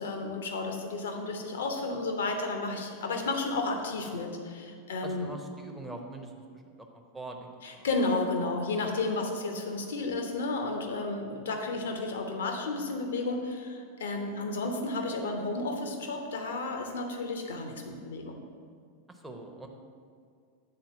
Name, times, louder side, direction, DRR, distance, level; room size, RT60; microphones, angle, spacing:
voice 1, 0.0-5.3 7.6-18.4, left 3 dB, 60° left, 4 dB, 1.0 m, -32 dB
voice 2, 5.0-7.9 11.3-11.6 17.7-18.1 19.1-19.7, right 2 dB, 5° right, 1 dB, 0.8 m, -44 dB
7.8 x 4.3 x 6.7 m, 2.2 s
figure-of-eight pair, 90°, 0 cm